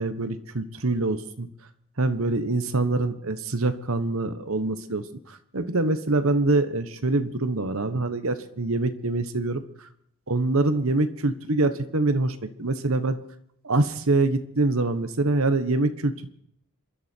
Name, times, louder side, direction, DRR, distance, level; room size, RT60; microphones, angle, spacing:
voice 1, 0.0-1.5 2.0-5.0 5.5-9.6 10.3-13.2 13.6-16.3, right 2 dB, 70° right, 10 dB, 1.3 m, -25 dB
27.5 x 11.5 x 4.5 m, 0.72 s
head